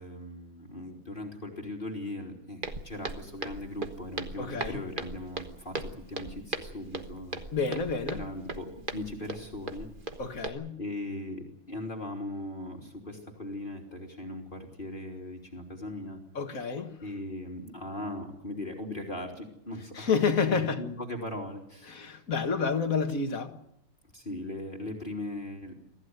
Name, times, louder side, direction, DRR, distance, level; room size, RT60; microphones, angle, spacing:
voice 1, 0.0-7.4 8.1-9.9 10.8-16.2 17.0-20.2 20.5-22.2 24.1-25.7, left 1 dB, 20° left, 3.2 m, -39 dB
Walk footsteps, 2.6-10.5, right 3 dB, 30° right, 1.2 m, -39 dB
voice 2, 4.4-4.8 7.5-8.2 10.2-10.7 16.4-16.9 20.0-20.8 21.9-23.6, left 5 dB, 40° left, 2.1 m, -29 dB
24.5 x 15.0 x 9.5 m
omnidirectional pair, 2.4 m